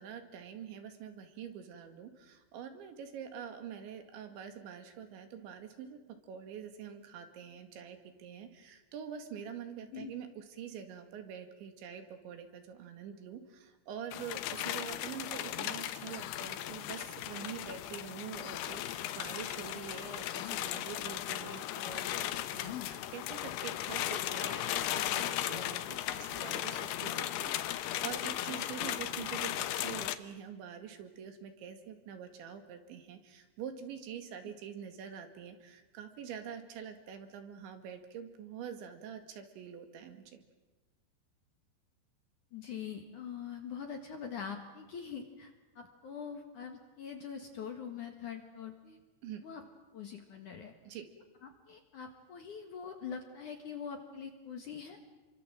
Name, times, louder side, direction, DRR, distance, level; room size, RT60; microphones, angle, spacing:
voice 1, 0.0-6.0 6.3-40.2 49.2-49.4 50.9-51.1, right 8 dB, 75° right, 7 dB, 4.4 m, -45 dB
sound 1, 14.1-30.2, left 13 dB, 70° left, 2.7 m, -37 dB
sound 2, 16.1-16.5 18.4-18.7 20.3-20.7 22.6-23.1, left 12 dB, 90° left, 3.9 m, -46 dB
voice 2, 42.5-49.0 49.4-49.6 49.9-50.7 51.4-55.0, left 7 dB, 55° left, 5 dB, 2.4 m, -43 dB
29.0 x 24.0 x 7.6 m, 1.2 s
omnidirectional pair, 5.5 m